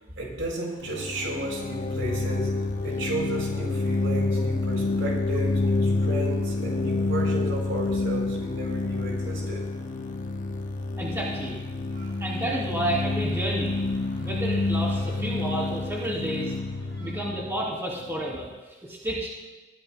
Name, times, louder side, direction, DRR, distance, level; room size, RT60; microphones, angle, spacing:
voice 1, 0.1-9.6 11.9-12.2 16.9-17.2, right 1 dB, 85° right, -2 dB, 4.4 m, -34 dB
sound 1, 0.6-17.5, right 1 dB, 65° right, 5.1 m, -53 dB
sound 2, 0.8-18.4, left 2 dB, 40° left, 0.4 m, -28 dB
voice 2, 11.0-11.6 12.2-13.8 14.2-16.6 17.0-19.3, right 1 dB, 15° right, -5 dB, 2.8 m, -31 dB
21.0 x 15.0 x 2.2 m, 1.2 s
head